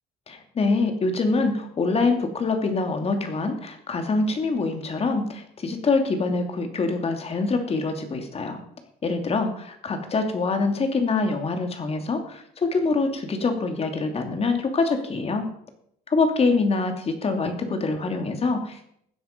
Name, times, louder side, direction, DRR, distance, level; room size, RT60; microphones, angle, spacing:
voice 1, 0.3-8.6 9.0-15.5 16.1-18.9, left 3 dB, 35° left, 6 dB, 2.6 m, -25 dB
16.0 x 9.7 x 5.3 m, 0.70 s
cardioid pair, 110°, 17 cm